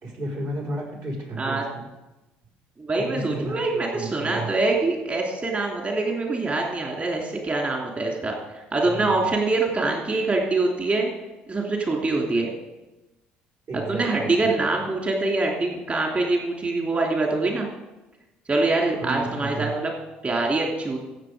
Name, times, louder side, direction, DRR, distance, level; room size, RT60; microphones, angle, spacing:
voice 1, 0.0-1.8 2.9-3.6 3.9-4.5 8.8-9.3 13.7-14.7 19.0-19.7, right 2 dB, 65° right, -2 dB, 4.7 m, -33 dB
voice 2, 2.8-11.1 11.5-12.5 13.7-17.7 18.5-19.9 20.2-21.0, right 3 dB, 30° right, 0 dB, 3.0 m, -24 dB
15.0 x 7.0 x 5.0 m, 1.0 s
hypercardioid pair, 65°, 4 cm